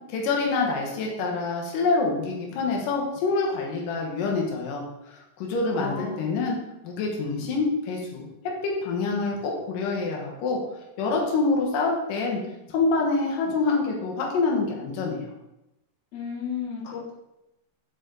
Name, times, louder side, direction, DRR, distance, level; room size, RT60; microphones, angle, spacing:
voice 1, 0.1-6.6 6.8-8.3 8.6-10.6 11.0-12.4 12.7-15.3, left 3 dB, 65° left, -1 dB, 2.4 m, -26 dB
voice 2, 5.7-6.3 16.1-17.1, left 6 dB, 50° left, -7 dB, 2.6 m, -33 dB
6.4 x 5.0 x 3.8 m, 0.91 s
omnidirectional pair, 4.7 m